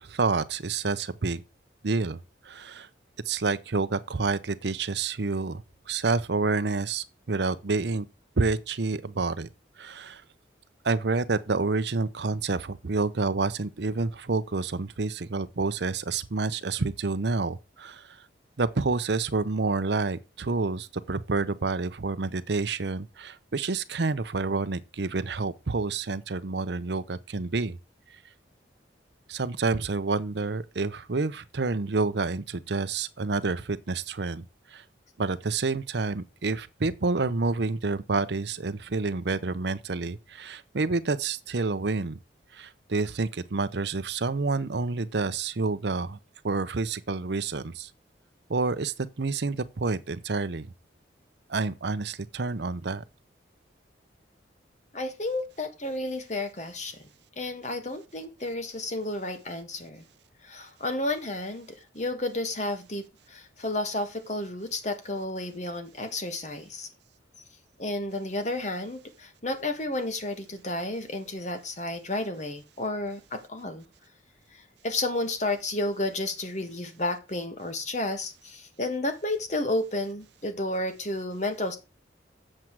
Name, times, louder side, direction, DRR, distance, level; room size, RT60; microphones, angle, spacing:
voice 1, 0.0-1.4 1.8-2.2 2.5-2.9 3.3-5.6 5.9-8.1 8.4-9.5 9.8-10.2 10.8-18.0 18.6-27.8 29.3-34.4 34.7-34.8 35.2-42.2 42.5-46.2 46.4-47.9 48.5-50.7 51.5-53.0, right 3 dB, 65° right, 0.7 m, -28 dB
voice 2, 54.9-57.0 57.4-60.0 60.4-66.9 67.8-73.8 74.5-81.8, left 2 dB, 40° left, 1.6 m, -32 dB
7.6 x 7.5 x 4.6 m
head